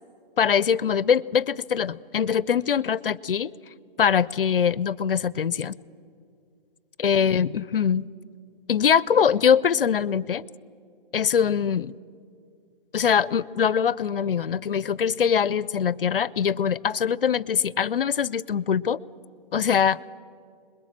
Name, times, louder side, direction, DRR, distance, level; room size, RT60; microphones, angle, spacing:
voice 1, 0.4-3.5 4.0-5.8 7.0-8.1 8.7-10.4 11.1-11.9 12.9-19.0 19.5-20.0, left 7 dB, 65° left, 21 dB, 0.6 m, -23 dB
27.0 x 21.5 x 7.4 m, 2.4 s
hypercardioid pair, 175°, 29 cm